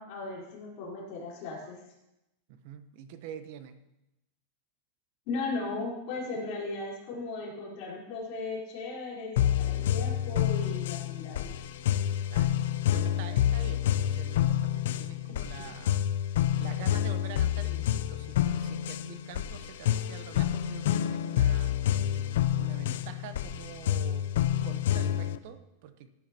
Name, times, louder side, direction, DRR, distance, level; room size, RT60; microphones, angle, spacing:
voice 1, 0.0-1.8 5.3-11.5 15.3-15.6, left 3 dB, 45° left, -4 dB, 4.0 m, -37 dB
voice 2, 2.5-3.8 12.3-12.6 12.9-16.1 16.6-21.8 22.6-24.4 24.6-26.1, right 9 dB, 50° right, 10 dB, 0.8 m, -46 dB
sound 1, 9.4-25.4, left 11 dB, 70° left, 0.5 m, -28 dB
15.5 x 9.4 x 2.9 m, 0.90 s
supercardioid pair, 160°, 0 cm